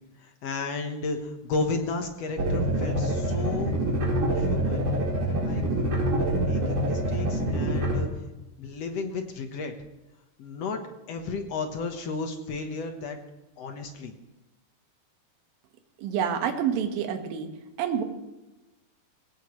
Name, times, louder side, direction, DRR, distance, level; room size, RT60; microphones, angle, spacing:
voice 1, 0.2-3.7 4.4-4.9 5.4-5.6 6.3-8.1 8.6-9.7 10.4-10.8 11.1-13.2 13.6-14.1, left 4 dB, 80° left, 4 dB, 1.4 m, -33 dB
sound 1, 2.4-7.9, right 1 dB, 35° right, 4.8 m, -26 dB
voice 2, 16.0-17.5 17.8-18.0, right 8 dB, 65° right, 5 dB, 3.1 m, -27 dB
20.5 x 18.0 x 3.2 m, 1.0 s
omnidirectional pair, 4.9 m